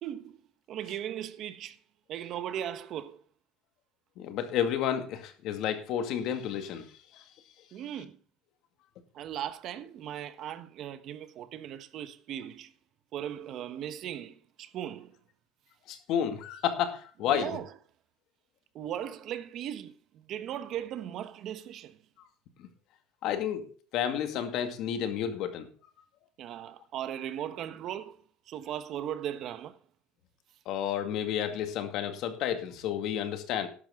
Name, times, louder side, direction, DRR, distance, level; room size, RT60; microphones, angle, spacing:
voice 1, 0.0-0.4 0.7-1.8 2.1-3.2 7.7-8.2 9.1-12.7 13.1-15.1 17.3-17.7 18.7-22.0 26.4-28.2 28.5-29.8, right 10 dB, 50° right, 1.2 m, -38 dB
voice 2, 4.2-6.9 7.1-7.2 15.9-17.6 22.6-22.7 23.2-25.7 30.7-33.7, left 9 dB, 60° left, 2.2 m, -31 dB
13.0 x 11.0 x 3.7 m
cardioid pair, 145°, 0 cm